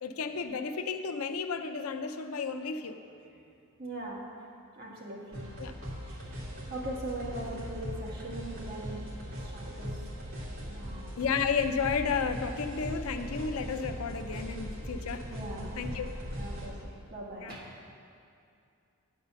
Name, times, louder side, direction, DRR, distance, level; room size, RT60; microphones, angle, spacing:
voice 1, 0.0-3.0 5.6-5.7 11.2-15.3 15.8-16.1 17.4-17.5, left 5 dB, 75° left, 7 dB, 0.5 m, -32 dB
voice 2, 3.8-4.2 4.7-5.5 6.0-6.4 6.7-9.1 9.4-10.0 10.7-11.1 15.3-15.8 16.4-17.7, right 1 dB, 45° right, -4 dB, 1.8 m, -41 dB
sound 1, 5.3-16.7, equal, 65° right, 2.6 m, -39 dB
9.7 x 5.5 x 6.8 m, 2.5 s
head